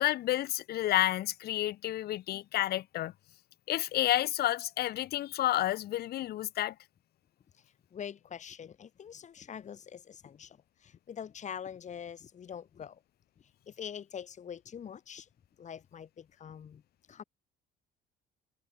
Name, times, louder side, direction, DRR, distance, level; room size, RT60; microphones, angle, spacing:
voice 1, 0.0-3.1 3.7-6.7, left 14 dB, 70° left, 2.2 m, -30 dB
voice 2, 7.9-13.0 13.7-15.3 15.6-16.8 17.1-17.2, left 8 dB, 45° left, 6.3 m, -44 dB
cardioid pair, 110°, 17 cm